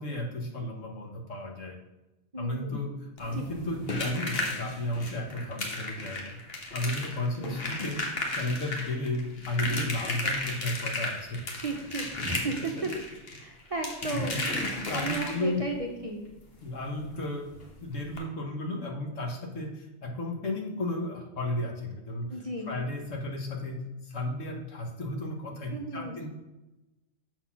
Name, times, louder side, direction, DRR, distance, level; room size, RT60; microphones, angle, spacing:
voice 1, 0.0-1.8 2.4-6.4 6.7-8.0 8.4-11.4 12.3-12.4 14.1-14.2 14.7-15.6 16.6-17.5 17.8-22.4 22.7-26.3, left 1 dB, 80° left, 2 dB, 1.5 m, -33 dB
voice 2, 2.3-2.8 3.3-3.4 7.4-7.6 11.6-12.9 13.4-16.2 22.3-22.8 25.7-26.2, right 3 dB, 35° right, 1 dB, 0.6 m, -35 dB
sound 1, 3.2-15.7 17.1-17.2 17.5-17.7 18.1-18.2, left 2 dB, 55° left, 1.3 m, -34 dB
6.8 x 4.1 x 5.7 m, 1.0 s
omnidirectional pair, 1.3 m